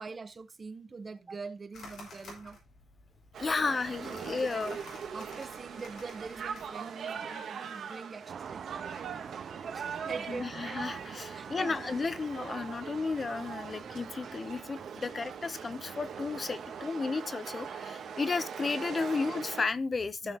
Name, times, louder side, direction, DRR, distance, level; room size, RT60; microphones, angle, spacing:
voice 1, 0.0-2.6 4.1-4.3 4.6-4.7 5.1-8.7 9.1-10.5 11.4-11.9 20.2-20.4, right 4 dB, 35° right, 0.9 m, -44 dB
sound 1, 1.7-6.7, left 2 dB, 70° left, 5.0 m, -52 dB
sound 2, 3.3-19.7, right 7 dB, 75° right, 1.7 m, -41 dB
voice 2, 3.4-4.8 10.3-20.4, left 4 dB, 35° left, 0.6 m, -33 dB
sound 3, 8.3-16.9, right 7 dB, 60° right, 0.4 m, -47 dB
14.0 x 5.6 x 2.8 m
cardioid pair, 95°, 0 cm